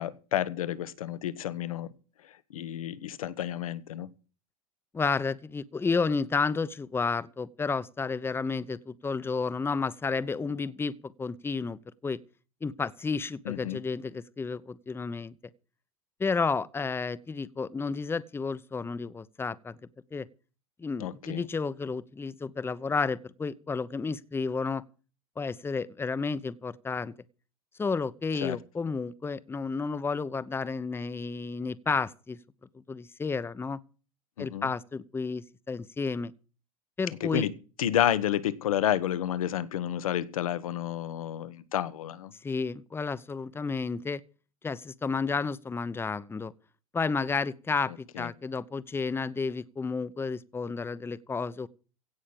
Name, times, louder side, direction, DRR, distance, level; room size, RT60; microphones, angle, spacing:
voice 1, 0.0-1.9 2.3-4.1 13.4-13.8 21.0-21.5 28.4-28.6 34.4-34.7 37.2-37.5 37.8-42.3 48.1-48.3, left 11 dB, 80° left, 1.4 m, -30 dB
voice 2, 4.9-12.2 12.6-15.3 16.2-19.8 20.1-20.3 20.8-24.8 25.4-27.1 27.8-32.4 32.9-33.8 34.4-36.3 37.0-37.5 42.4-44.2 44.6-46.5 46.9-51.7, left 4 dB, 15° left, 0.9 m, -31 dB
17.0 x 6.4 x 8.8 m
hypercardioid pair, 100°, 18 cm